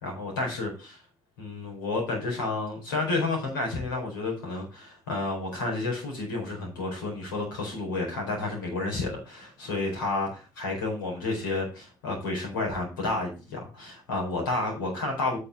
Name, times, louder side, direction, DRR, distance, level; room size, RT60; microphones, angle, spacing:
voice 1, 0.0-0.7 1.4-15.4, left 2 dB, 80° left, -1 dB, 4.5 m, -30 dB
8.8 x 6.6 x 5.1 m, 0.33 s
figure-of-eight pair, 50°, 11 cm